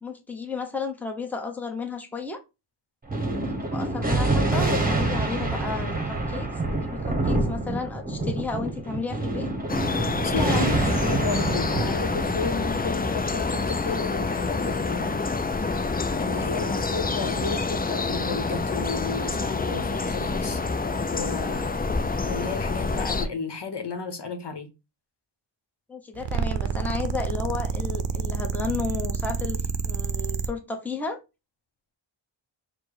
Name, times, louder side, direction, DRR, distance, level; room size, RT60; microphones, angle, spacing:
voice 1, 0.0-2.4 3.5-6.5 6.7-9.5 10.2-11.0 25.9-31.2, left 4 dB, 5° left, 0.9 m, -33 dB
Thunder, 3.1-13.9, right 2 dB, 20° right, 1.1 m, -27 dB
sound 1, 9.7-23.3, left 3 dB, 20° left, 0.4 m, -27 dB
voice 2, 10.2-15.2 16.2-20.6 21.1-21.7 22.2-24.7, left 4 dB, 60° left, 0.9 m, -33 dB
sound 2, 26.2-30.5, right 6 dB, 60° right, 0.6 m, -28 dB
4.4 x 2.2 x 4.7 m
wide cardioid pair, 60°, 48 cm